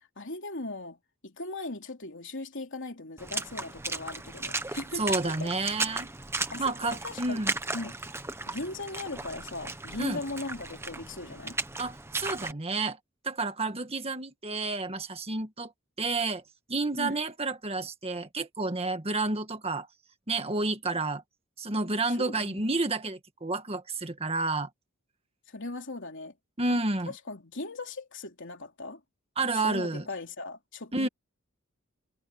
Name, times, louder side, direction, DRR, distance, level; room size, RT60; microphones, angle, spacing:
voice 1, 0.2-5.9 6.5-7.4 7.7-8.0 8.5-11.6 17.0-17.2 22.2-22.7 25.5-26.3 26.7-26.8 27.1-29.0 29.5-31.1, left 2 dB, 60° left, 3.6 m, -38 dB
Water / Splash splatter, 3.2-12.5, right 3 dB, 10° right, 1.2 m, -36 dB
voice 2, 4.9-6.1 6.6-7.5 10.0-10.2 11.8-13.0 13.2-15.7 16.0-16.4 16.7-19.9 20.3-21.2 21.6-24.7 26.6-27.1 29.4-30.1 30.9-31.1, right 3 dB, 30° right, 1.8 m, -30 dB
head